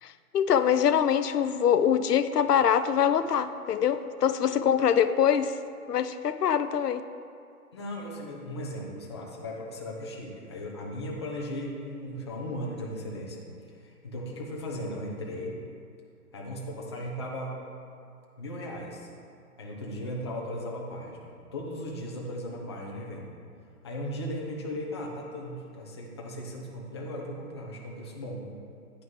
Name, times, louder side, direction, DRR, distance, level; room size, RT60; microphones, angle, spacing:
voice 1, 0.0-5.6 5.9-7.0, left 8 dB, 90° left, 12 dB, 0.6 m, -24 dB
voice 2, 7.7-13.4 13.7-15.6 16.3-17.6 18.4-19.1 19.6-23.3 23.8-28.5, equal, 20° left, -2 dB, 0.6 m, -37 dB
9.7 x 5.4 x 4.7 m, 2.4 s
hypercardioid pair, 155°, 46 cm